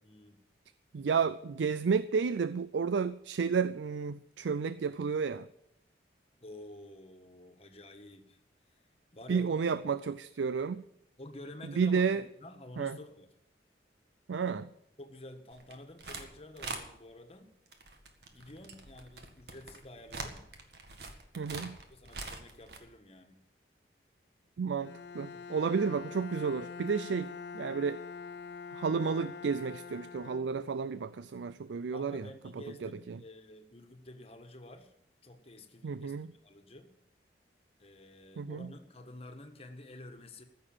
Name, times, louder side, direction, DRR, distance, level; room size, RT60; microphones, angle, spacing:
voice 1, 0.0-0.4 6.4-8.8 9.1-9.9 11.2-12.0 12.4-13.3 15.0-17.5 18.3-20.5 21.4-23.4 25.3-25.8 31.9-34.9 35.2-36.2 36.4-36.9 37.8-40.4, left 1 dB, 35° left, 6 dB, 1.5 m, -50 dB
voice 2, 0.9-5.5 9.3-10.8 11.8-12.2 12.8-13.0 14.3-14.7 21.4-21.7 24.6-28.0 28.7-32.3 32.8-33.2 35.8-36.3 38.4-38.7, right 5 dB, 85° right, 14 dB, 0.4 m, -31 dB
sound 1, 15.5-16.3 16.6-16.8 17.7-22.8, right 3 dB, 65° right, 1.8 m, -43 dB
Bowed string instrument, 24.8-31.0, left 5 dB, 70° left, 0.6 m, -45 dB
14.5 x 6.7 x 8.8 m, 0.79 s
head